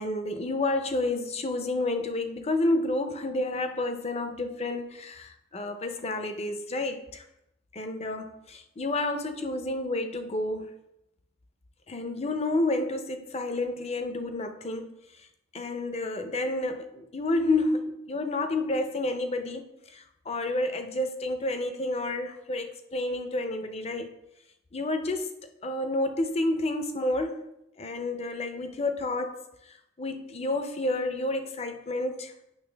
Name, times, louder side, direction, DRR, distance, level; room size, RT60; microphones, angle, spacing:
voice 1, 0.0-7.2 7.7-10.7 11.9-14.9 15.5-24.2 24.7-25.3 25.6-27.5 27.8-32.3, left 2 dB, 30° left, 0.6 m, -30 dB
8.9 x 6.0 x 3.4 m
head